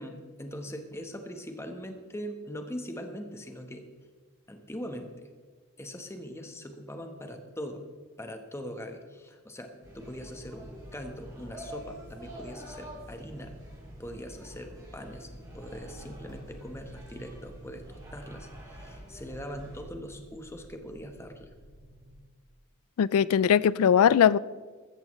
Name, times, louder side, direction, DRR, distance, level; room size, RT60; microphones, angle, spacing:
voice 1, 0.0-3.8 4.5-5.3 5.8-7.8 8.2-13.5 14.0-15.3 15.5-21.5, equal, 10° left, 5 dB, 1.1 m, -41 dB
sound 1, 9.8-19.8, equal, 15° right, 4.3 m, -46 dB
sound 2, 15.4-22.2, right 2 dB, 75° right, 2.7 m, -52 dB
voice 2, 23.0-24.4, left 8 dB, 75° left, 20 dB, 0.3 m, -20 dB
14.5 x 14.0 x 3.1 m, 1.5 s
head